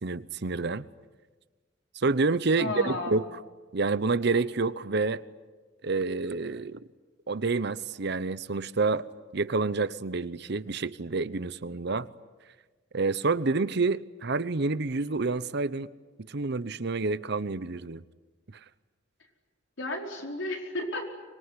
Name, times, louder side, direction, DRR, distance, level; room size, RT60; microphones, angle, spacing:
voice 1, 0.0-0.9 2.0-3.2 3.7-5.2 5.8-6.8 7.3-9.1 9.3-12.1 12.9-15.9 16.3-18.0, right 3 dB, 55° right, 16 dB, 0.8 m, -28 dB
voice 2, 2.6-3.1 19.8-21.1, left 2 dB, 70° left, 1 dB, 4.9 m, -33 dB
25.0 x 22.0 x 9.9 m, 1.3 s
head